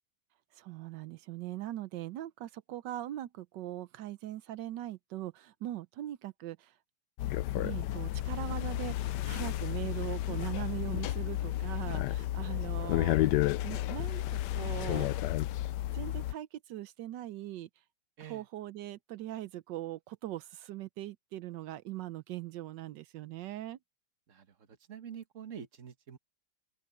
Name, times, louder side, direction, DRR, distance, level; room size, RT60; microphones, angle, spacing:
voice 1, 0.5-6.8 7.6-15.3 15.9-17.7 18.2-23.8, right 14 dB, 85° right, 1.4 m, -41 dB
sound 1, 7.2-16.3, left 14 dB, 80° left, 1.2 m, -32 dB
voice 2, 24.9-26.2, right 8 dB, 45° right, 1.8 m, -46 dB
open air
omnidirectional pair, 1.9 m